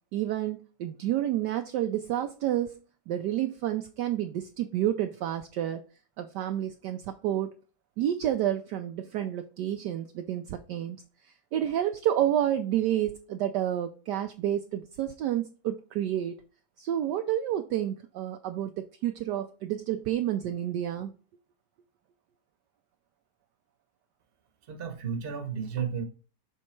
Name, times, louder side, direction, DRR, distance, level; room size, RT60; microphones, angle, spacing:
voice 1, 0.1-2.8 3.1-5.8 6.2-7.5 8.0-16.4 16.8-21.1, right 11 dB, 75° right, 1.0 m, -30 dB
voice 2, 24.7-26.0, right 7 dB, 40° right, 1.0 m, -33 dB
6.4 x 3.7 x 4.3 m
omnidirectional pair, 2.1 m